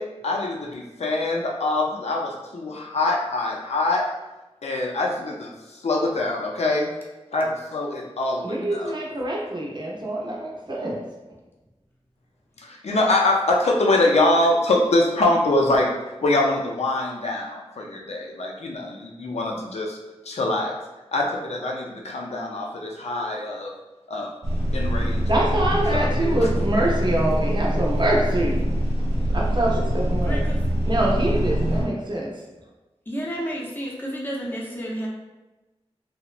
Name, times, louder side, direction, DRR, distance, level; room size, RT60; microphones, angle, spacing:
voice 1, 0.0-4.1 4.6-6.9 7.3-8.9 12.6-15.9 16.2-20.0 20.3-20.7 21.1-23.7 24.1-24.3 24.7-25.2 25.9-26.1, left 2 dB, 75° left, 0 dB, 0.4 m, -24 dB
voice 2, 8.4-11.0 25.3-28.6 29.3-30.5 30.9-32.3, right 1 dB, 45° right, -3 dB, 0.6 m, -25 dB
sound 1, 24.4-31.8, equal, 80° right, 1.0 m, -24 dB
voice 3, 30.2-30.6 33.1-35.1, equal, 20° left, -4 dB, 0.6 m, -31 dB
2.9 x 2.1 x 2.4 m, 1.1 s
wide cardioid pair, 85°, 11 cm